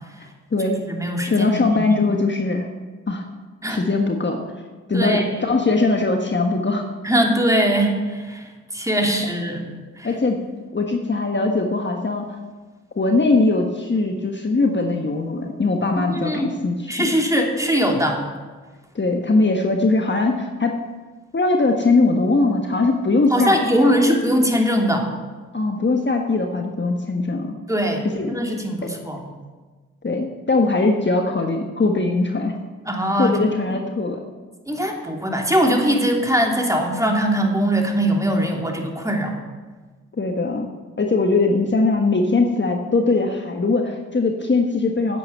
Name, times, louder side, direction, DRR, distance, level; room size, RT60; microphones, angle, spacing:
voice 1, 0.2-0.8 1.3-2.7 3.1-3.2 3.7-4.4 4.9-6.9 10.0-10.4 10.7-12.4 12.9-17.2 18.9-20.8 21.3-23.9 25.5-27.5 28.1-28.4 28.8-28.9 30.0-32.5 33.2-34.2 40.2-40.7 41.0-45.2, left 3 dB, 35° left, 3 dB, 1.4 m, -21 dB
voice 2, 0.9-2.0 3.6-3.8 4.9-5.5 7.0-8.5 8.7-9.6 10.0-10.1 16.1-16.5 16.9-18.2 23.3-25.1 27.7-29.2 32.9-33.3 34.7-39.4, equal, 10° right, 1 dB, 3.0 m, -21 dB
9.6 x 8.1 x 8.6 m, 1.4 s
supercardioid pair, 40°, 33 cm